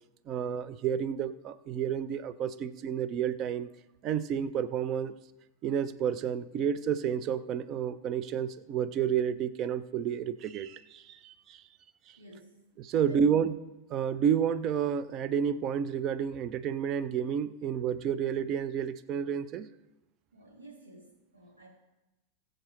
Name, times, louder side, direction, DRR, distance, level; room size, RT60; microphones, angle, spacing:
voice 1, 0.3-3.7 4.0-5.1 5.6-11.6 12.8-13.5 13.9-19.7, right 8 dB, 35° right, 15 dB, 0.6 m, -30 dB
voice 2, 12.2-12.6 13.0-13.4 20.3-21.7, right 1 dB, 80° right, -6 dB, 2.9 m, -51 dB
20.0 x 7.6 x 3.2 m, 1.0 s
figure-of-eight pair, 90°, 0 cm